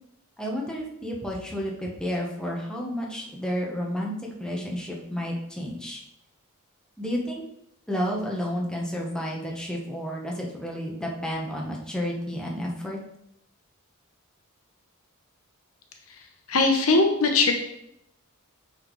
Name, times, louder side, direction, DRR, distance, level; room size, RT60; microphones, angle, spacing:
voice 1, 0.4-4.1 4.4-6.0 7.0-7.4 7.9-13.0, equal, 5° left, -2 dB, 1.1 m, -31 dB
voice 2, 16.5-17.5, left 3 dB, 70° left, 4 dB, 0.9 m, -20 dB
8.5 x 4.1 x 3.1 m, 0.78 s
head